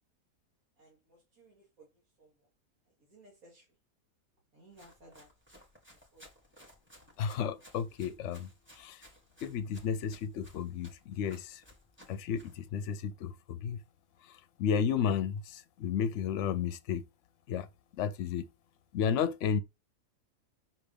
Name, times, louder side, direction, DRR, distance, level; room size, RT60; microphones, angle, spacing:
voice 1, 0.8-2.5 2.9-3.7 4.5-5.6 5.9-6.4, right 1 dB, 85° right, 2.8 m, -60 dB
Run, 4.7-12.6, equal, 10° right, 1.7 m, -59 dB
voice 2, 7.2-8.5 8.8-9.0 9.4-11.6 12.1-13.8 14.6-17.0 17.5-17.7 17.9-18.4 18.9-19.6, left 7 dB, 65° left, 0.9 m, -32 dB
5.8 x 3.6 x 5.2 m
omnidirectional pair, 1.5 m